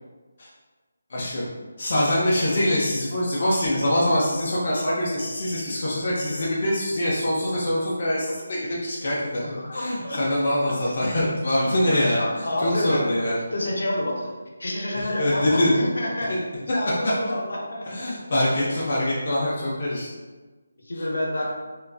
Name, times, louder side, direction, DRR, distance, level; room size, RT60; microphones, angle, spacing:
voice 1, 1.1-1.5 1.8-13.4 15.2-15.7 16.3-16.4 17.0-17.1 17.9-20.1, left 1 dB, 35° left, -6 dB, 0.3 m, -24 dB
voice 2, 9.4-10.2 10.8-10.9 11.9-13.1 13.5-14.3 14.6-16.3 16.7-18.1 20.8-21.4, left 1 dB, 75° left, -2 dB, 0.6 m, -28 dB
2.3 x 2.2 x 2.4 m, 1.3 s
hypercardioid pair, 180°, 0 cm